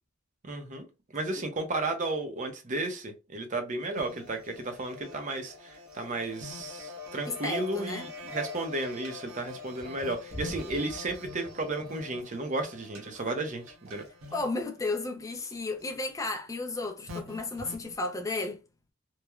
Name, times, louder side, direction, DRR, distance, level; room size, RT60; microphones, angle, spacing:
voice 1, 0.4-0.9 1.1-14.1, right 2 dB, 40° right, 0.6 m, -33 dB
sound 1, 3.9-17.9, left 2 dB, 85° right, 0.9 m, -45 dB
voice 2, 7.3-8.1 14.3-18.6, left 3 dB, 15° left, 0.4 m, -33 dB
3.0 x 2.0 x 2.3 m
head